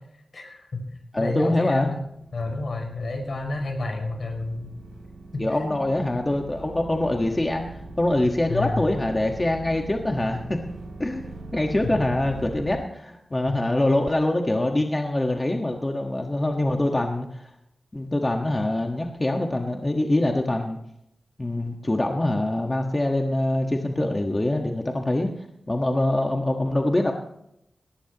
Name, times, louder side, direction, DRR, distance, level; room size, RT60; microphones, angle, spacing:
voice 1, 0.3-0.8 1.2-2.0 2.3-4.8 5.3-5.8 8.5-8.9 13.5-13.6, left 2 dB, 60° left, 3 dB, 5.7 m, -30 dB
voice 2, 1.1-2.0 5.4-10.6 11.0-17.5 17.9-20.8 21.4-25.3 25.7-27.1, left 1 dB, 25° left, 2 dB, 1.4 m, -24 dB
sound 1, 2.0-12.8, right 2 dB, 80° right, 4.3 m, -41 dB
19.0 x 18.5 x 3.0 m, 0.78 s
wide cardioid pair, 100°, 0 cm